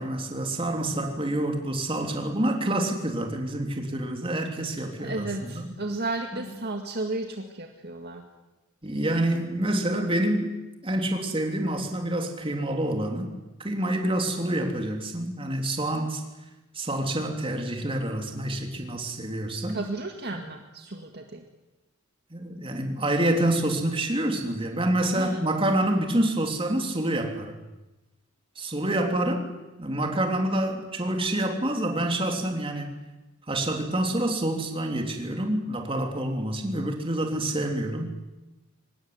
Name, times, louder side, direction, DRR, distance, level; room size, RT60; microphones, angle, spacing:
voice 1, 0.0-5.7 6.3-6.4 8.8-13.3 13.6-16.2 16.7-19.8 22.3-27.6 28.5-29.5 29.8-32.9 33.5-38.2, right 1 dB, 25° right, 3 dB, 3.5 m, -27 dB
voice 2, 4.8-8.2 19.7-21.4 25.1-25.4, right 2 dB, 50° right, 3 dB, 2.0 m, -33 dB
24.5 x 19.5 x 9.7 m, 1.1 s
head